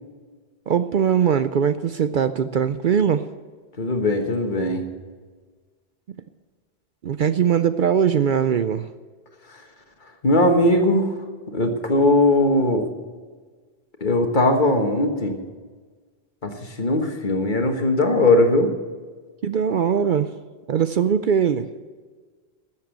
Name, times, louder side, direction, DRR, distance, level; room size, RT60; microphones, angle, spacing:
voice 1, 0.7-3.3 7.0-8.9 19.4-20.3 20.7-21.7, right 8 dB, 60° right, 12 dB, 0.6 m, -21 dB
voice 2, 3.8-4.8 10.2-11.1 11.5-12.9 14.0-15.4 16.4-18.7, left 1 dB, 50° left, 5 dB, 1.6 m, -19 dB
13.5 x 7.6 x 9.0 m, 1.5 s
omnidirectional pair, 1.1 m